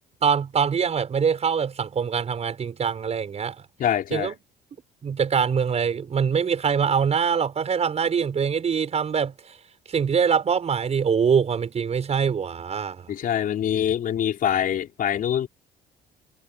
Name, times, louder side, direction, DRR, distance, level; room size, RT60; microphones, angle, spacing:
voice 1, 0.2-3.6 4.1-4.4 5.0-9.3 9.9-13.1, right 6 dB, 40° right, 7.3 m, -23 dB
voice 2, 3.8-4.3 13.1-15.5, left 10 dB, 55° left, 4.6 m, -24 dB
cardioid pair, 110°, 17 cm